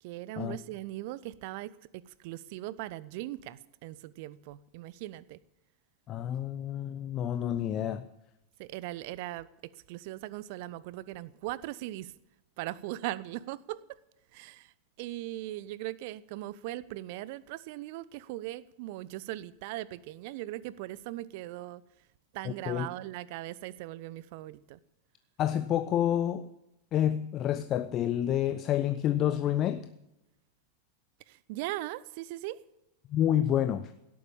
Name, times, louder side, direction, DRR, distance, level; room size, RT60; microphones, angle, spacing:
voice 1, 0.0-5.4 8.6-12.1 12.6-14.0 14.3-21.8 22.3-24.8 31.3-32.6, right 16 dB, 50° right, 0.7 m, -39 dB
voice 2, 6.1-8.1 22.7-22.9 25.4-26.4 26.9-29.8 33.1-33.9, left 11 dB, 30° left, 0.7 m, -28 dB
17.0 x 8.7 x 8.7 m
figure-of-eight pair, 90°, 0 cm